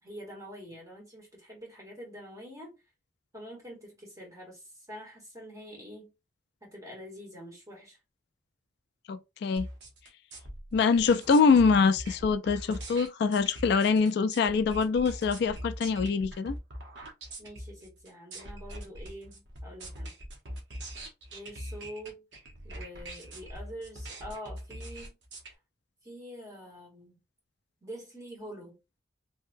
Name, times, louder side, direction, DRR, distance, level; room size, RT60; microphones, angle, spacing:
voice 1, 0.0-2.7 3.3-6.1 6.6-8.0 17.4-20.1 21.3-22.2 22.6-25.1 26.0-27.2 27.8-28.8, equal, 20° right, 1.6 m, -45 dB
voice 2, 9.1-9.7 10.7-16.6, left 5 dB, 65° left, 0.3 m, -24 dB
sound 1, 9.6-25.5, equal, 80° right, 1.1 m, -42 dB
3.4 x 2.8 x 2.5 m
head